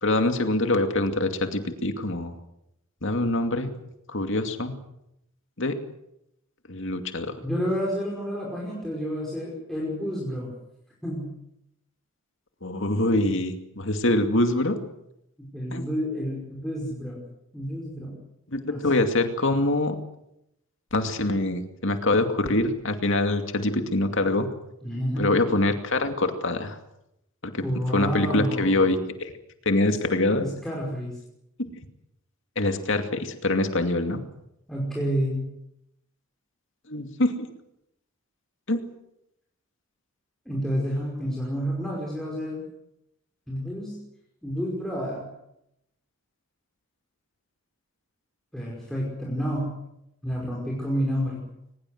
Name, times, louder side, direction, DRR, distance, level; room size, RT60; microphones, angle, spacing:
voice 1, 0.0-2.3 3.0-3.7 4.1-4.8 5.6-5.8 6.7-7.3 12.6-14.8 15.7-15.8 18.5-20.0 20.9-24.5 25.2-26.8 27.4-27.6 27.9-29.3 29.7-30.5 31.6-31.7 32.6-34.2 36.9-37.5 38.7-38.8, left 2 dB, 55° left, 6 dB, 2.5 m, -24 dB
voice 2, 7.4-10.5 11.0-11.3 15.5-17.2 17.5-18.1 18.7-18.8 24.8-25.3 27.6-28.8 29.8-30.0 30.4-31.2 34.7-35.5 40.5-42.6 43.5-44.0 44.4-45.3 48.5-49.7 50.2-51.4, equal, ahead, -4 dB, 5.4 m, -29 dB
22.5 x 21.0 x 8.0 m, 0.82 s
head